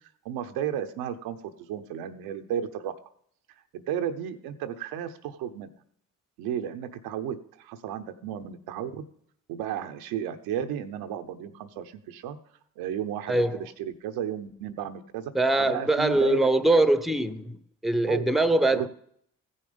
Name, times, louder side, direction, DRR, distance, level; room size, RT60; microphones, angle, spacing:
voice 1, 0.2-2.9 3.7-5.7 6.4-9.0 9.5-12.4 12.8-15.3 15.6-16.8 18.1-18.3 18.7-18.9, right 9 dB, 85° right, 0.8 m, -33 dB
voice 2, 13.3-13.6 15.3-18.9, right 2 dB, ahead, 0.8 m, -23 dB
15.0 x 5.6 x 5.1 m
supercardioid pair, 50°, 36 cm